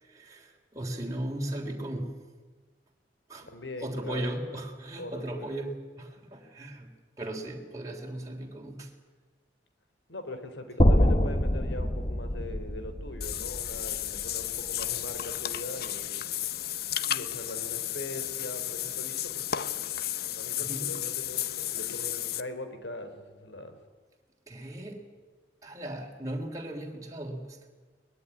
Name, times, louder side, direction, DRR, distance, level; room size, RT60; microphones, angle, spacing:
voice 1, 0.0-2.3 3.3-3.5 3.8-6.9 7.2-8.9 20.6-21.0 24.5-25.0 25.6-27.6, right 1 dB, 20° right, 0 dB, 3.3 m, -37 dB
voice 2, 3.5-4.3 5.0-5.6 10.1-16.3 17.0-19.8 20.3-23.8, left 1 dB, 75° left, 8 dB, 3.7 m, -41 dB
sound 1, 10.8-15.0, equal, 30° left, 1.6 m, -26 dB
Water / Bathtub (filling or washing), 13.2-22.4, left 12 dB, 55° left, 0.9 m, -33 dB
22.5 x 20.0 x 9.8 m, 1.3 s
head